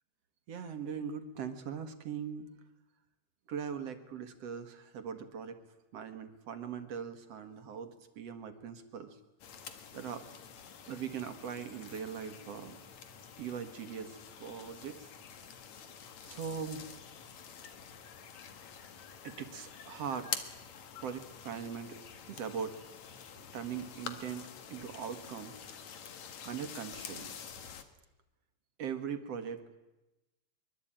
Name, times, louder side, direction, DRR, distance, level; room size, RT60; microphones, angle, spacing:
voice 1, 0.5-2.5 3.5-5.6 5.9-9.2 9.9-10.3 10.9-12.8 13.4-15.1 15.8-15.9 16.2-16.9 19.2-20.3 21.0-22.0 22.2-22.8 23.5-25.5 26.4-27.4 28.8-29.6, right 7 dB, 60° right, 9 dB, 2.5 m, -40 dB
sound 1, 9.4-27.8, left 7 dB, 70° left, 3.0 m, -47 dB
24.0 x 23.0 x 8.9 m, 1.0 s
omnidirectional pair, 3.4 m